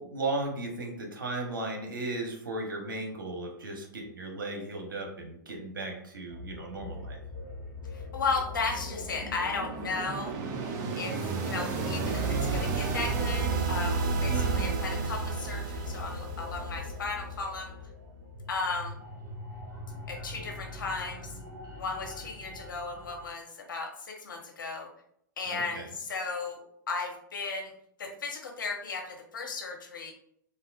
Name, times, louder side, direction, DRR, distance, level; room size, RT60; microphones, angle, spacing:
voice 1, 0.0-7.2 14.2-14.7 25.5-25.9, right 2 dB, 85° right, 1 dB, 0.8 m, -36 dB
sound 1, 6.3-23.3, left 2 dB, 65° right, 1.3 m, -42 dB
voice 2, 7.9-10.3 11.0-17.7 18.5-19.0 20.1-21.3 21.8-24.9 25.4-26.6 26.9-27.7 28.0-30.1, left 4 dB, 75° left, 1 dB, 0.7 m, -35 dB
sound 2, 8.3-17.2, right 4 dB, 35° right, 0.5 m, -32 dB
3.5 x 2.4 x 2.3 m, 0.71 s
hypercardioid pair, 105°, 11 cm